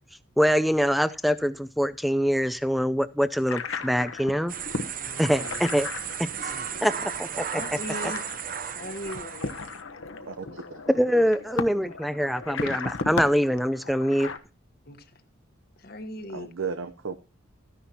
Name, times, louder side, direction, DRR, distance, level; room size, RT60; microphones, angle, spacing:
voice 1, 0.4-4.5 5.2-5.9 6.4-6.5 6.8-7.6 10.9-14.3, equal, ahead, 14 dB, 0.4 m, -24 dB
sound 1, 3.5-14.4, left 4 dB, 75° left, 1.0 m, -36 dB
sound 2, 4.5-9.8, right 8 dB, 45° right, 0.7 m, -35 dB
voice 2, 4.9-5.7 6.5-6.9 7.5-8.2 8.7-9.6 14.8-15.2 15.8-16.5, left 1 dB, 45° left, 8 dB, 1.2 m, -39 dB
voice 3, 10.2-11.3 16.3-17.2, right 5 dB, 80° right, 9 dB, 0.8 m, -35 dB
14.0 x 10.0 x 2.8 m, 0.32 s
head